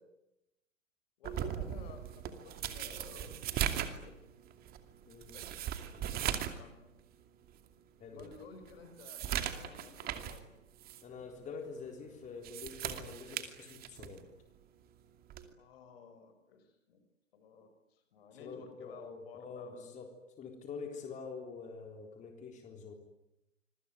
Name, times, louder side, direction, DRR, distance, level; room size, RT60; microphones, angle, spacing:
voice 1, 1.2-4.3 5.3-6.9 8.1-10.5 15.6-17.0 17.3-19.7, left 5 dB, 50° left, 8 dB, 5.8 m, -54 dB
sound 1, 1.2-6.6 7.0-7.1 7.7-7.8 8.2-10.4 10.8-11.0 12.2-14.2 15.3-15.5, right 10 dB, 25° right, 2.6 m, -38 dB
voice 2, 8.0-8.3 11.0-14.3 18.4-20.1 20.4-22.9, left 5 dB, 20° left, 4 dB, 3.8 m, -46 dB
26.5 x 23.5 x 9.4 m, 0.90 s
figure-of-eight pair, 110°, 37 cm